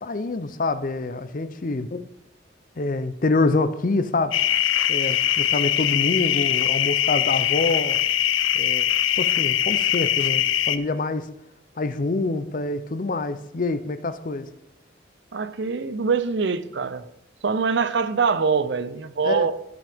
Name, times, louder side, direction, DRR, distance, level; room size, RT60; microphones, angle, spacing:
voice 1, 0.0-2.1 2.8-4.4 4.9-8.0 8.5-8.9 9.2-11.3 11.8-14.5 19.2-19.5, left 3 dB, 45° left, 0.6 m, -26 dB
sound 1, 4.3-10.8, left 11 dB, 90° left, 0.5 m, -22 dB
voice 2, 15.3-17.0 17.4-19.5, right 5 dB, 65° right, 0.6 m, -23 dB
16.0 x 6.2 x 3.5 m
head